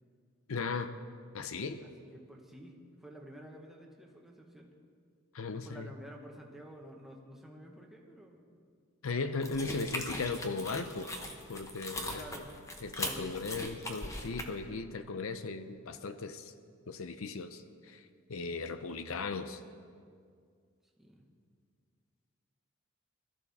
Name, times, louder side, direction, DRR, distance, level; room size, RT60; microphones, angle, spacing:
voice 1, 0.5-0.9 1.3-1.8 5.3-5.9 9.0-11.1 11.5-12.2 12.8-16.5 16.9-17.6 17.9-18.0 18.3-19.6, left 4 dB, 75° left, 10 dB, 0.6 m, -37 dB
voice 2, 1.8-4.7 5.5-8.5 12.1-12.6 13.0-13.7 21.0-21.2, equal, ahead, -1 dB, 1.4 m, -51 dB
Chipbag and eating chips, 9.4-14.4, left 1 dB, 15° left, 1.0 m, -40 dB
21.0 x 13.5 x 3.6 m, 2.1 s
head